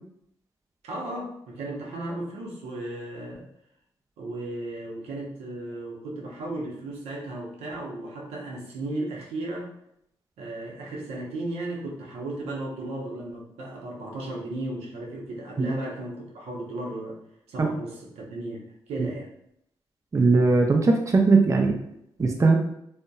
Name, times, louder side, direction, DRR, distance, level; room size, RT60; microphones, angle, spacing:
voice 1, 0.8-3.5 4.2-9.7 10.4-17.2 17.5-19.3, right 2 dB, 90° right, -2 dB, 0.6 m, -35 dB
voice 2, 20.1-21.8 22.2-22.6, right 3 dB, 30° right, 2 dB, 0.4 m, -19 dB
2.7 x 2.1 x 2.2 m, 0.76 s
cardioid pair, 60°, 10 cm